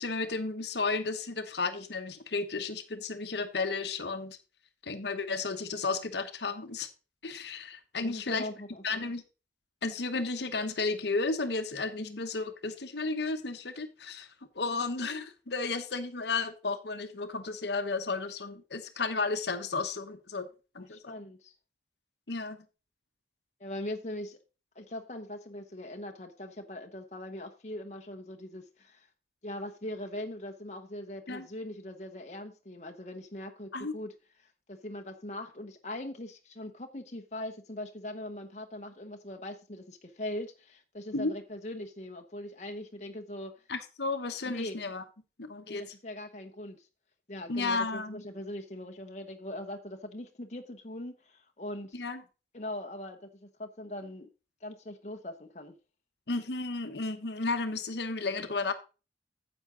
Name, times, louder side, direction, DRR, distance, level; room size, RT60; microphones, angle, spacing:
voice 1, 0.0-4.4 4.8-6.9 7.2-8.5 8.8-9.2 9.8-14.3 14.5-20.5 20.7-21.1 22.3-22.6 31.3-31.5 33.7-33.9 41.1-41.3 43.7-45.0 45.4-45.8 47.5-48.2 51.9-52.2 56.3-58.7, left 3 dB, 70° left, 1.1 m, -33 dB
voice 2, 8.0-9.0 12.0-12.2 20.8-21.5 23.6-24.4 24.7-29.1 29.4-34.1 34.4-43.6 44.5-44.8 45.6-46.9 47.3-52.0 52.5-54.3 54.6-55.7, left 1 dB, 40° left, 1.0 m, -41 dB
9.7 x 7.2 x 3.8 m
head